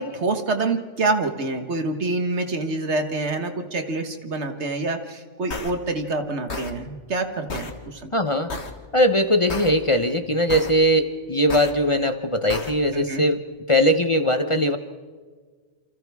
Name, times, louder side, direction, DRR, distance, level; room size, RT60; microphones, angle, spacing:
voice 1, 0.0-8.1 12.9-13.2, right 3 dB, 65° right, 6 dB, 1.8 m, -26 dB
sound 1, 5.5-5.7 6.5-6.7 7.5-7.7 8.5-8.7 9.5-9.7 10.5-10.7 11.5-11.7 12.5-12.7, left 3 dB, 65° left, 1.9 m, -31 dB
voice 2, 8.1-8.5 8.9-14.8, equal, 30° left, 8 dB, 0.9 m, -20 dB
28.5 x 27.0 x 3.6 m, 1.5 s
omnidirectional pair, 1.2 m